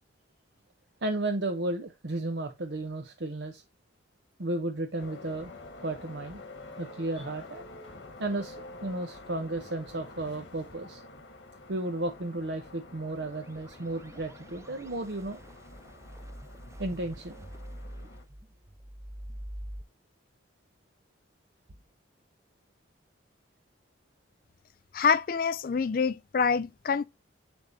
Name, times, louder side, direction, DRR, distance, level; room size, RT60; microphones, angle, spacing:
voice 1, 1.0-3.6 4.4-5.5 5.8-6.4 6.8-7.6 8.2-11.0 11.7-15.4 16.8-17.5, right 2 dB, 70° right, 0.9 m, -33 dB
sound 1, 5.0-18.2, left 2 dB, 85° left, 1.5 m, -48 dB
sound 2, 13.0-19.8, equal, 15° right, 0.4 m, -45 dB
voice 2, 24.9-27.0, left 6 dB, 50° left, 0.4 m, -26 dB
10.0 x 3.6 x 2.7 m
head